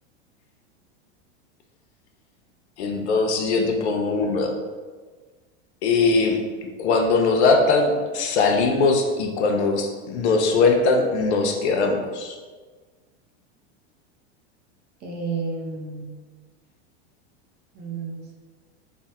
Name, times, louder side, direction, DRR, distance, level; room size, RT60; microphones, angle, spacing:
voice 1, 2.8-4.5 5.8-6.4 6.8-12.4, left 3 dB, 80° left, 3 dB, 0.7 m, -21 dB
voice 2, 15.0-16.1 17.7-18.4, right 4 dB, 30° right, 0 dB, 0.7 m, -31 dB
3.4 x 2.1 x 4.2 m, 1.4 s
supercardioid pair, 140°, 33 cm